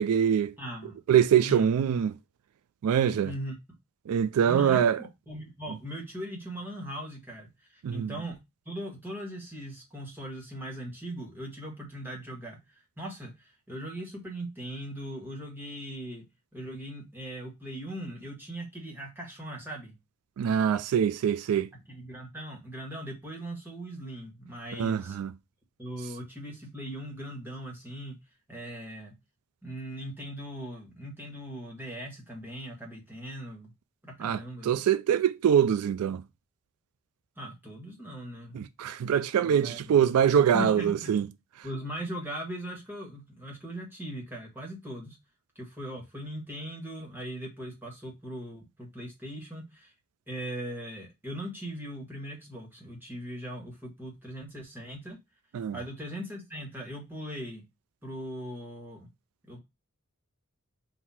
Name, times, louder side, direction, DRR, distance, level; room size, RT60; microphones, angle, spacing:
voice 1, 0.0-0.5 1.1-2.1 2.8-3.3 4.1-5.0 7.8-8.1 20.4-21.7 24.7-25.3 34.2-36.2 38.5-41.3 55.5-55.8, right 8 dB, 90° right, 0.3 m, -24 dB
voice 2, 0.6-1.0 1.4-1.7 3.2-3.5 4.4-8.4 8.6-16.2 16.5-19.9 21.9-25.2 25.8-28.1 28.5-29.1 29.6-33.7 34.0-34.8 37.4-38.6 39.4-40.0 40.4-41.1 41.6-45.2 45.5-49.9 50.3-55.2 55.7-57.6 58.0-59.1 59.5-59.6, equal, 10° right, 1.6 m, -39 dB
3.9 x 2.7 x 4.2 m
head